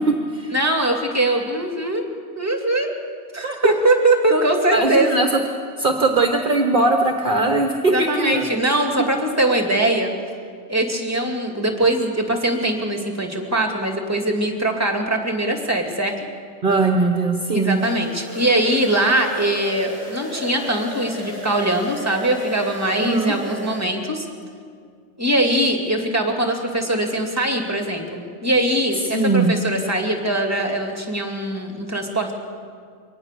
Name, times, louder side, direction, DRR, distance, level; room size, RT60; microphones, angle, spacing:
voice 1, 0.5-2.0 2.4-2.9 3.3-5.1 7.9-10.1 10.7-16.1 17.5-24.3 25.2-32.3, right 1 dB, 15° right, 3 dB, 2.6 m, -21 dB
voice 2, 4.7-5.3 5.8-8.4 16.6-17.8 23.0-23.3 29.1-29.5, right 2 dB, 45° right, 4 dB, 1.3 m, -20 dB
sound 1, 17.7-23.9, left 1 dB, 50° left, 6.2 m, -34 dB
23.5 x 18.5 x 6.8 m, 2.1 s
omnidirectional pair, 1.2 m